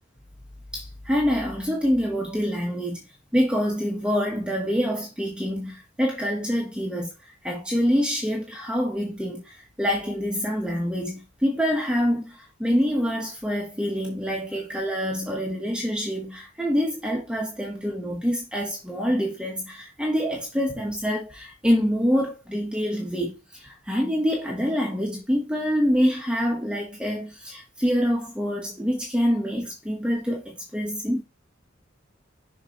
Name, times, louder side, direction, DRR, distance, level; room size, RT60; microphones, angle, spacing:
voice 1, 0.7-3.0 3.3-31.2, equal, 5° right, 1.2 m, -26 dB
6.7 x 4.7 x 3.0 m
head